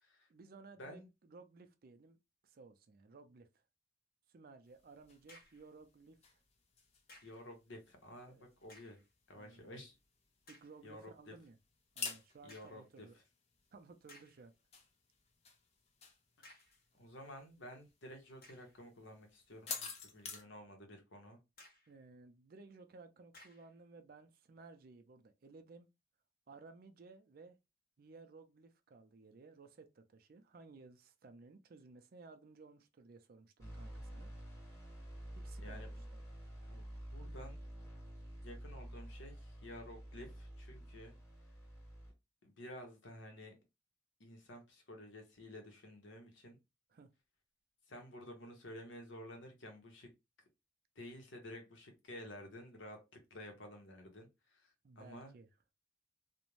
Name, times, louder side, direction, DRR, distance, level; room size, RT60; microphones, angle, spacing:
voice 1, 0.3-2.2 2.4-3.6 4.3-6.4 8.3-8.5 9.3-9.8 10.5-11.6 12.0-13.1 13.7-14.5 21.9-25.9 26.5-27.6 28.0-34.3 35.3-35.8 36.1-36.2 46.9-47.1 54.8-55.5, right 3 dB, 50° right, 0.4 m, -58 dB
sound 1, 4.6-20.4, left 5 dB, 35° left, 0.5 m, -52 dB
sound 2, 5.0-5.7 7.1-7.5 8.6-9.1 9.7-9.8 10.5-10.8 12.5-12.9 13.6-13.7 14.1-14.5 16.4-16.8 18.4-18.8 19.4-20.2 20.6-20.7 21.6-22.0 23.3-23.7, left 1 dB, 50° left, 0.9 m, -60 dB
voice 2, 7.2-9.0 9.3-10.0 10.8-11.3 12.4-13.1 16.9-21.4 35.6-36.0 36.7-36.9 37.1-37.6 38.4-41.1 42.4-43.6 44.2-46.6 47.9-50.1 51.0-53.0 53.3-55.3, left 1 dB, 80° left, 0.9 m, -52 dB
sound 3, 33.6-42.1, right 1 dB, 15° left, 1.2 m, -49 dB
2.5 x 2.1 x 3.0 m
head